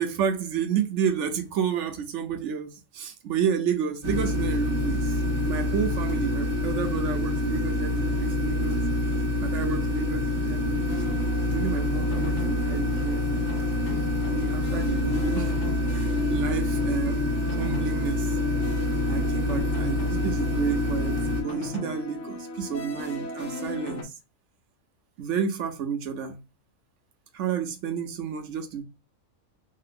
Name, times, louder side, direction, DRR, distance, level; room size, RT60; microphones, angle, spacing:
voice 1, 0.0-8.8 9.4-13.5 14.3-15.6 15.9-18.4 19.1-24.2 25.2-26.4 27.3-28.8, right 7 dB, 65° right, 0.9 m, -30 dB
sound 1, 4.0-21.4, left 1 dB, 25° right, 0.8 m, -26 dB
sound 2, 10.9-24.0, left 3 dB, 60° left, 1.0 m, -37 dB
3.1 x 2.8 x 2.5 m
omnidirectional pair, 1.4 m